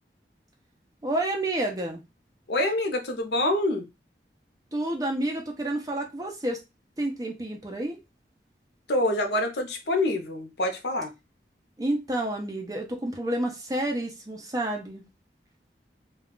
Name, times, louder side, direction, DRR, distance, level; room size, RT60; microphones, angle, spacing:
voice 1, 1.0-2.0 4.7-6.6 7.0-8.0 11.8-15.0, right 1 dB, 20° right, 0.5 m, -29 dB
voice 2, 2.5-3.8 8.9-11.1, left 1 dB, 75° left, 0.7 m, -26 dB
2.3 x 2.3 x 3.6 m
head